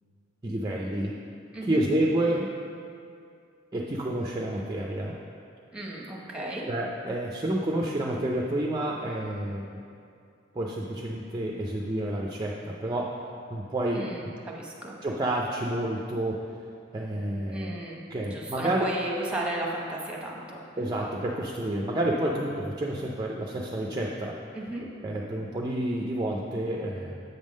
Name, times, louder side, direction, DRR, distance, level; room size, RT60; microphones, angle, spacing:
voice 1, 0.4-1.1 1.6-2.5 3.7-5.2 6.7-9.8 10.5-13.2 13.5-14.1 15.0-16.4 16.9-17.8 18.1-18.9 20.8-24.4 25.0-27.2, right 1 dB, 20° right, -2 dB, 0.4 m, -29 dB
voice 2, 5.7-6.6 13.9-14.9 17.5-20.6 24.5-24.8, right 1 dB, 5° right, -2 dB, 0.9 m, -34 dB
8.1 x 3.6 x 6.3 m, 2.4 s
head